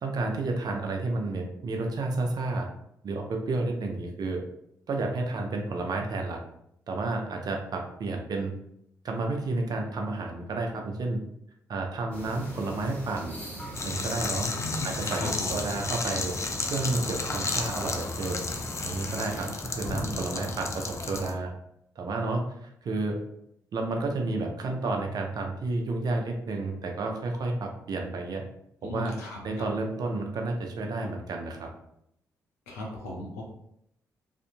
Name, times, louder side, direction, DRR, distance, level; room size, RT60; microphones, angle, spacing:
voice 1, 0.0-2.7 3.0-4.4 4.9-6.4 6.9-8.5 9.0-11.2 11.7-13.4 13.8-14.5 14.8-16.4 16.7-18.4 18.8-21.5 22.0-23.2 23.7-28.4 28.8-29.2 29.4-31.7, right 2 dB, 55° right, 2 dB, 0.6 m, -31 dB
sound 1, 12.1-19.5, right 1 dB, 15° left, 1.1 m, -41 dB
sound 2, 13.7-21.3, left 3 dB, 35° left, 0.4 m, -33 dB
voice 2, 14.4-15.3 28.8-29.6 32.7-33.4, left 2 dB, 90° left, -2 dB, 0.6 m, -37 dB
2.6 x 2.5 x 2.5 m, 0.75 s
hypercardioid pair, 40°, 8 cm